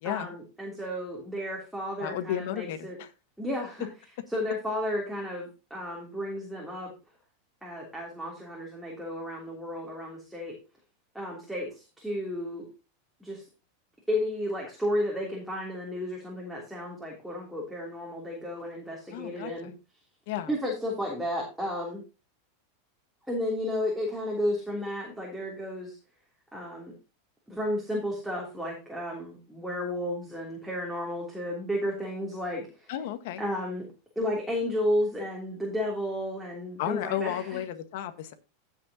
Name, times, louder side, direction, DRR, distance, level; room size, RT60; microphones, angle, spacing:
voice 1, 0.0-3.0 3.4-3.9 4.3-6.9 7.6-10.5 11.1-12.7 13.2-13.4 14.1-19.7 20.4-22.0 23.3-26.0 26.5-26.9 27.5-32.9 33.4-37.6, left 1 dB, ahead, -3 dB, 3.2 m, -33 dB
voice 2, 2.0-3.1 19.1-19.5 20.3-20.5 32.9-33.4 36.8-38.3, left 11 dB, 65° left, 9 dB, 1.5 m, -33 dB
15.5 x 6.3 x 2.9 m, 0.31 s
supercardioid pair, 135°, 0 cm